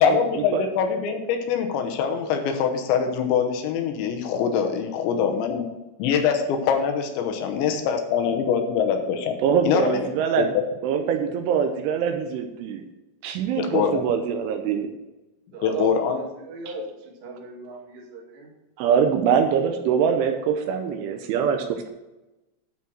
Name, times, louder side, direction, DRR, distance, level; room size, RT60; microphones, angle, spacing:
voice 1, 0.0-5.7 6.0-9.4 9.6-10.1 10.4-10.5 13.6-14.0 15.6-16.2, left 7 dB, 75° left, 5 dB, 3.0 m, -23 dB
voice 2, 9.4-10.5 10.8-12.8 13.2-14.9 18.8-21.9, right 7 dB, 85° right, 6 dB, 3.0 m, -23 dB
voice 3, 15.5-18.5 19.8-19.9, right 4 dB, 65° right, -2 dB, 3.8 m, -36 dB
12.0 x 4.6 x 6.1 m, 1.0 s
omnidirectional pair, 5.8 m